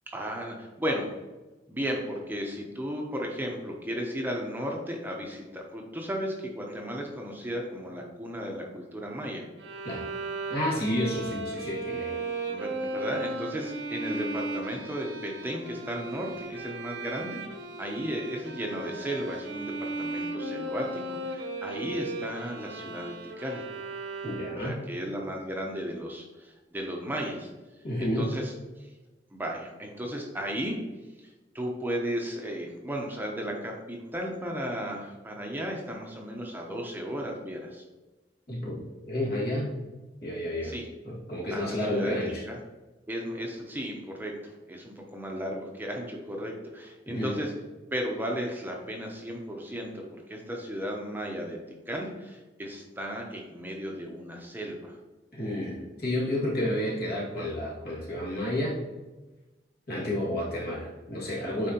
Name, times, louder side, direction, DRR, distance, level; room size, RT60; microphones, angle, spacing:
voice 1, 0.1-1.1 1.7-9.4 10.8-10.9 11.1-11.2 12.5-17.4 17.8-23.7 24.6-27.5 28.0-28.9 29.3-30.8 31.2-31.3 31.5-37.8 40.6-40.9 41.5-42.2 42.5-42.6 43.1-47.5 47.9-51.6 51.9-55.0, equal, 10° right, 0 dB, 0.8 m, -35 dB
Bowed string instrument, 9.6-24.9, right 2 dB, 85° right, 1.0 m, -36 dB
voice 2, 10.5-12.2 24.2-24.8 27.8-28.3 38.5-38.8 39.0-39.8 40.2-40.7 41.0-42.4 47.1-47.3 55.3-58.8 59.9-61.7, left 1 dB, 60° left, -4 dB, 2.1 m, -30 dB
8.9 x 4.1 x 2.9 m, 1.1 s
head